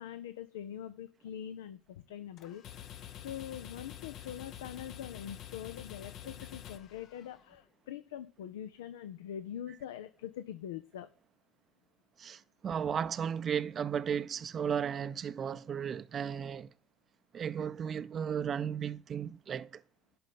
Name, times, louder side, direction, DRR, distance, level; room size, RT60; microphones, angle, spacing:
voice 1, 0.0-2.9 3.2-11.1, left 10 dB, 85° left, 0.5 m, -43 dB
sound 1, 2.4-7.6, left 11 dB, 60° left, 0.8 m, -47 dB
voice 2, 12.2-16.7 17.3-19.8, right 8 dB, 45° right, 0.4 m, -35 dB
11.0 x 4.3 x 7.5 m
hypercardioid pair, 70°, 0 cm